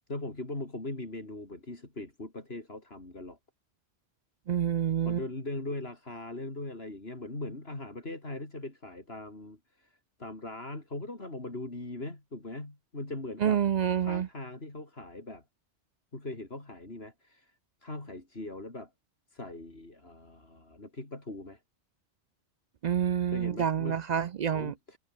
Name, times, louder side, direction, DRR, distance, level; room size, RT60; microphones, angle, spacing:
voice 1, 0.1-3.4 5.0-13.6 14.0-15.4 16.1-17.5 17.8-18.9 19.3-21.6 23.3-24.0 24.5-25.0, left 2 dB, 65° left, 4.7 m, -40 dB
voice 2, 4.5-5.2 13.4-14.3 22.8-25.0, right 9 dB, 55° right, 0.5 m, -28 dB
omnidirectional pair, 1.1 m